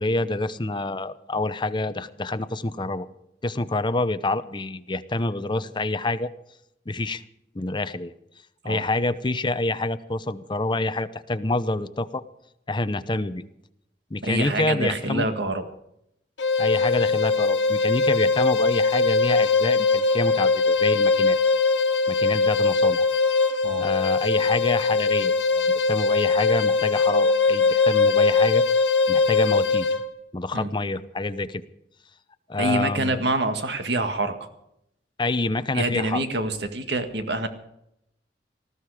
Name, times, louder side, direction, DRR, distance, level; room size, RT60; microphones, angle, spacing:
voice 1, 0.0-3.1 3.4-6.3 6.9-7.2 7.5-8.1 8.6-12.2 12.7-13.4 14.1-15.2 16.6-21.4 22.1-23.1 23.8-29.9 30.3-31.6 32.5-33.2 35.2-36.2, left 2 dB, 25° left, 12 dB, 0.7 m, -27 dB
voice 2, 14.2-15.7 23.6-23.9 30.5-30.7 32.6-34.3 35.7-37.5, right 2 dB, 70° right, 7 dB, 1.8 m, -26 dB
sound 1, 16.4-30.1, left 4 dB, 90° left, 1.3 m, -21 dB
19.5 x 14.0 x 4.9 m, 0.80 s
head